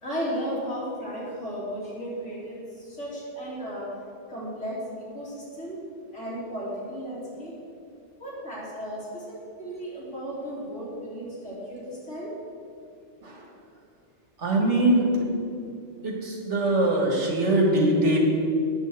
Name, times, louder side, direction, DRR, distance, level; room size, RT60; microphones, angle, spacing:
voice 1, 0.0-3.9 4.3-5.8 6.1-7.6 8.2-12.3, equal, 80° left, -7 dB, 3.8 m, -35 dB
voice 2, 14.4-15.3 16.0-18.2, right 1 dB, 75° right, 0 dB, 2.1 m, -22 dB
9.5 x 6.4 x 8.0 m, 2.4 s
omnidirectional pair, 1.2 m